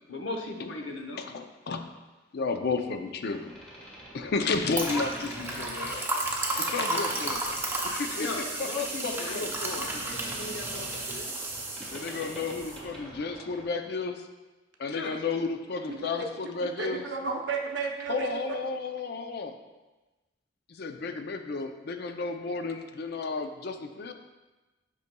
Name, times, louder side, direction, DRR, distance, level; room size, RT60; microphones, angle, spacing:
voice 1, 0.1-1.2 8.1-11.3 14.9-15.2, left 2 dB, 75° left, 2 dB, 0.8 m, -38 dB
voice 2, 1.2-1.8 2.3-3.5 4.1-6.2 6.6-7.5 7.8-8.3 8.6-9.8 11.9-14.2 14.8-17.0 18.1-19.5 20.7-24.1, left 4 dB, 55° left, 6 dB, 0.5 m, -32 dB
Boat Water vehicle, 3.3-13.8, right 1 dB, 5° left, 1.2 m, -45 dB
sound 1, 4.7-12.8, right 2 dB, 10° right, 0.6 m, -33 dB
voice 3, 15.9-18.4, right 4 dB, 65° right, 2 dB, 0.7 m, -34 dB
8.1 x 5.2 x 2.2 m, 1.1 s
head